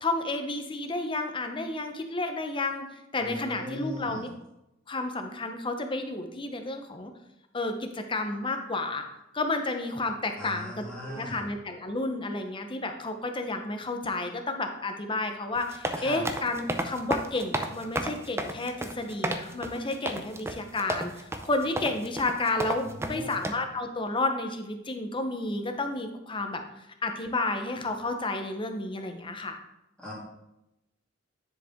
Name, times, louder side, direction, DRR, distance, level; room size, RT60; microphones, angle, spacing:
voice 1, 0.0-2.9 3.1-4.3 4.9-7.1 7.5-9.1 9.3-26.6 27.0-29.6, left 2 dB, 25° left, 6 dB, 0.8 m, -31 dB
voice 2, 3.2-4.2 10.4-11.4 16.0-16.2 22.8-23.4 30.0-30.1, equal, 5° left, -7 dB, 2.7 m, -38 dB
sound 1, 15.5-23.5, right 1 dB, 15° right, 0.5 m, -32 dB
9.9 x 5.1 x 3.6 m, 0.88 s
head